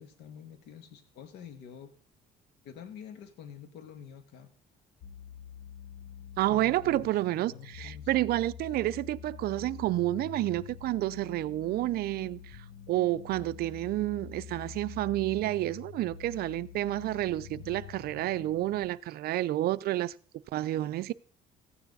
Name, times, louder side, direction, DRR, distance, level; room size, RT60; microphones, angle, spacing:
voice 1, 0.0-1.9 2.6-4.5 6.5-7.1 7.5-8.1, left 8 dB, 85° left, 1.9 m, -47 dB
sound 1, 5.0-18.9, left 9 dB, 65° left, 1.5 m, -46 dB
voice 2, 6.4-12.6 12.9-20.1 20.5-21.1, right 15 dB, 65° right, 0.5 m, -30 dB
14.5 x 9.4 x 4.0 m
cardioid pair, 110°, 17 cm